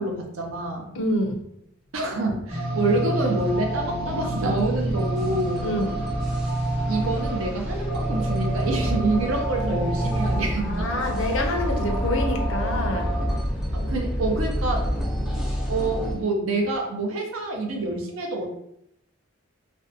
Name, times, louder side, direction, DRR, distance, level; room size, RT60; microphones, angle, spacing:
voice 1, 0.0-0.9 1.9-5.6 6.9-10.9 13.7-14.9 15.7-18.5, right 2 dB, 85° right, 2 dB, 0.6 m, -27 dB
voice 2, 0.9-1.4 5.6-6.1 10.6-13.1, left 1 dB, 70° left, 4 dB, 0.4 m, -27 dB
sound 1, 2.3-16.1, equal, 5° right, 0.4 m, -29 dB
sound 2, 2.5-16.3, right 2 dB, 30° right, 0.7 m, -30 dB
2.6 x 2.1 x 2.6 m, 0.76 s
head